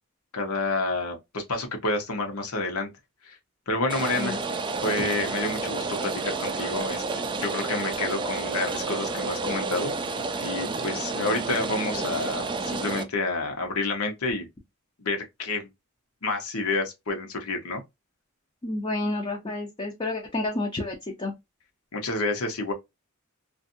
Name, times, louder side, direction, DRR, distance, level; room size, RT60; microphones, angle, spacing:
voice 1, 0.3-2.9 3.2-3.4 3.7-4.4 4.8-9.9 10.4-14.5 15.0-15.7 16.2-17.8 21.9-22.7, left 2 dB, 80° left, 1.0 m, -29 dB
Rain, 3.9-13.0, right 3 dB, 20° right, 0.4 m, -30 dB
voice 2, 18.6-21.3, left 2 dB, 25° left, 0.6 m, -30 dB
2.6 x 2.5 x 2.5 m
head